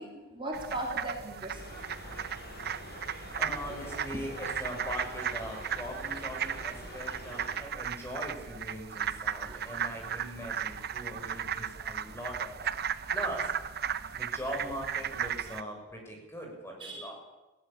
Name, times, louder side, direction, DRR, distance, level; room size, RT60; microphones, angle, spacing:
voice 1, 0.0-1.6 9.3-9.7 10.2-10.3 11.3-11.5 16.8-17.0, right 2 dB, 25° right, -1 dB, 3.8 m, -38 dB
sound 1, 0.5-15.6, right 8 dB, 55° right, 0.9 m, -36 dB
sound 2, 1.5-7.6, left 1 dB, 55° left, 6.0 m, -45 dB
voice 2, 3.3-12.8 13.1-13.5 14.1-17.1, equal, 15° left, 0 dB, 6.7 m, -41 dB
20.0 x 17.5 x 8.7 m, 1.1 s
head